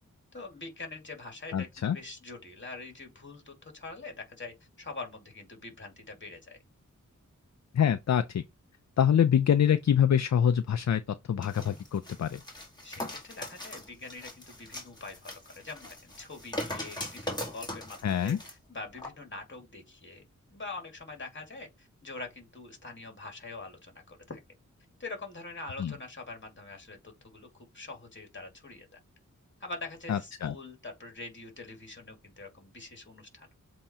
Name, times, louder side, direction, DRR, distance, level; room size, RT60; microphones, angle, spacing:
voice 1, 0.3-6.6 12.8-20.2 20.5-24.4 25.0-29.0 29.6-33.5, left 3 dB, 35° left, 2.3 m, -44 dB
voice 2, 1.5-2.0 7.7-8.4 9.0-11.0 11.3-12.4 18.0-18.4 25.8-25.9 30.1-30.5, left 8 dB, 60° left, 0.5 m, -25 dB
sound 1, 11.4-18.5 19.0-19.1, left 1 dB, 15° left, 2.2 m, -40 dB
7.6 x 2.9 x 4.3 m
wide cardioid pair, 100°, 32 cm